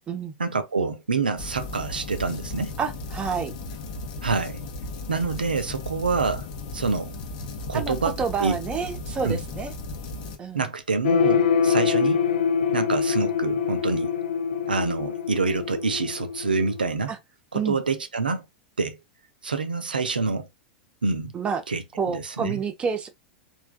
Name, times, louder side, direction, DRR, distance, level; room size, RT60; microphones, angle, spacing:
voice 1, 0.4-2.7 4.2-4.6 5.1-6.5 6.7-7.1 7.7-8.1 8.4-8.6 9.2-9.4 10.5-12.2 12.7-14.1 14.7-17.1 17.5-18.4 18.8-19.0 19.4-20.5 21.0-21.3 21.7-21.8 22.1-22.6, right 4 dB, 80° right, 0.5 m, -26 dB
sound 1, 1.4-10.4, left 3 dB, 50° left, 0.8 m, -36 dB
voice 2, 2.8-3.5 7.7-9.7 10.4-10.7 17.1-17.2 17.5-17.8 21.3-21.6 22.0-23.1, right 6 dB, 20° right, 0.7 m, -28 dB
sound 2, 11.0-16.9, left 6 dB, 70° left, 0.5 m, -24 dB
3.3 x 2.3 x 2.2 m
figure-of-eight pair, 95°, 5 cm